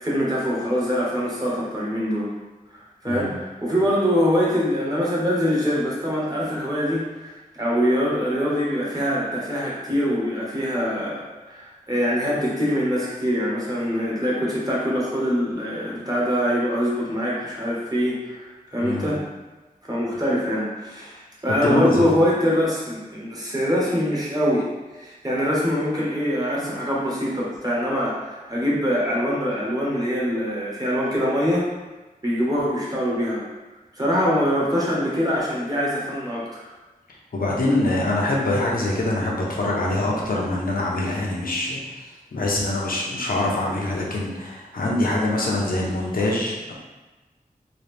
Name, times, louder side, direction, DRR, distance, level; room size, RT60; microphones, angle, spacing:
voice 1, 0.0-2.3 3.0-18.4 18.7-19.2 19.9-24.7 25.0-31.7 32.2-33.4 33.9-36.6, equal, 25° right, -6 dB, 1.2 m, -24 dB
voice 2, 3.0-3.4 18.8-19.1 21.6-22.1 37.3-42.0 42.3-46.7, left 2 dB, 75° left, -3 dB, 0.8 m, -24 dB
3.9 x 2.3 x 3.4 m, 1.2 s
wide cardioid pair, 80°, 15 cm